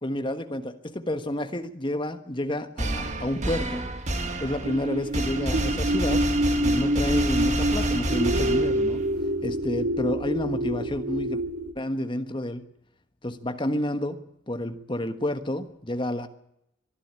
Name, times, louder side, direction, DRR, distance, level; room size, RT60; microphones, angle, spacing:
voice 1, 0.0-3.9 4.4-6.3 6.6-9.0 9.4-11.4 11.7-12.6 13.2-16.3, left 1 dB, 25° left, 8 dB, 1.4 m, -30 dB
sound 1, 2.8-9.1, right 2 dB, 35° right, 1.8 m, -29 dB
sound 2, 4.6-11.7, equal, 60° right, 2.2 m, -27 dB
23.0 x 11.5 x 9.9 m, 0.79 s
head